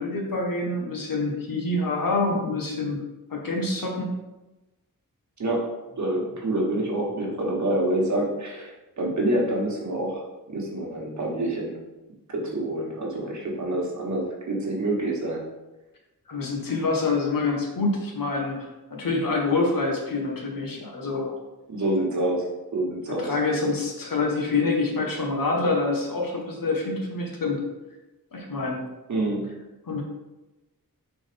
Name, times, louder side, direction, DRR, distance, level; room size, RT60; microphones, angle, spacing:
voice 1, 0.0-3.0 3.3-4.1 16.3-21.4 23.2-27.6 28.3-28.8 29.9-30.0, left 3 dB, 70° left, 0 dB, 1.4 m, -26 dB
voice 2, 5.9-11.7 12.3-15.4 21.7-22.4 22.7-23.3 29.1-29.5, right 1 dB, 55° right, -2 dB, 1.5 m, -27 dB
4.7 x 4.0 x 5.2 m, 1.0 s
wide cardioid pair, 135°, 35 cm